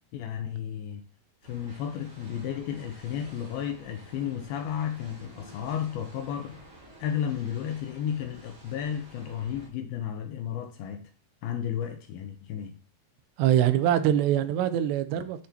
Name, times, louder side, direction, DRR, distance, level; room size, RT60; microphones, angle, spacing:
voice 1, 0.1-1.1 1.4-6.6 7.0-11.1 11.4-12.8, left 9 dB, 80° left, 2.3 m, -33 dB
sound 1, 1.4-9.7, right 1 dB, 30° right, 3.2 m, -51 dB
voice 2, 13.4-15.5, right 11 dB, 90° right, 2.9 m, -24 dB
8.9 x 6.7 x 2.9 m
omnidirectional pair, 4.9 m